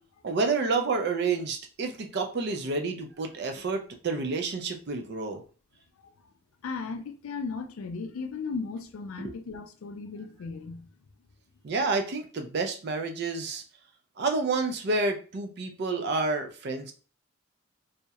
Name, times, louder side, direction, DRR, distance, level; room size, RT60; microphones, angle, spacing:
voice 1, 0.2-5.4 9.2-9.3 11.6-13.6 14.2-16.9, right 3 dB, 50° right, 0.4 m, -29 dB
voice 2, 6.6-10.9, left 4 dB, 75° left, 0.4 m, -36 dB
2.7 x 2.0 x 2.3 m
head